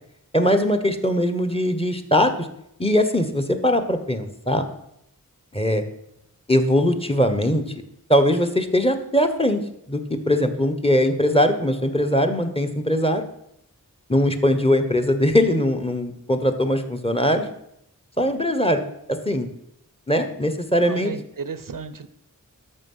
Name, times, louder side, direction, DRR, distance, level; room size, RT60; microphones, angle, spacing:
voice 1, 0.3-2.5 2.8-4.6 5.5-5.8 6.5-7.6 8.1-9.6 9.9-13.2 14.1-17.5 18.2-18.8 19.1-19.5 20.1-21.1, equal, 15° left, 6 dB, 1.2 m, -21 dB
voice 2, 20.8-22.1, right 5 dB, 70° right, 13 dB, 0.7 m, -33 dB
12.0 x 6.9 x 5.6 m, 0.79 s
wide cardioid pair, 55°, 34 cm